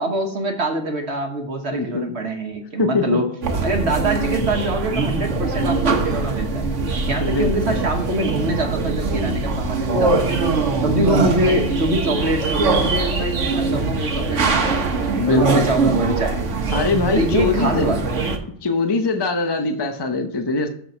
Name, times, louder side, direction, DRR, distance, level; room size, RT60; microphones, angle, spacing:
voice 1, 0.0-3.3 3.6-6.8 7.1-10.4 10.8-14.9 15.3-16.5 17.1-18.1, right 1 dB, 65° right, 3 dB, 1.5 m, -24 dB
voice 2, 1.7-2.1 2.8-3.2 7.2-7.5 15.1-15.7 16.7-17.9 18.6-20.7, left 4 dB, 25° left, 5 dB, 0.7 m, -22 dB
sound 1, 3.4-18.4, right 3 dB, 80° right, 1.5 m, -22 dB
6.9 x 6.5 x 5.5 m, 0.64 s
omnidirectional pair, 1.2 m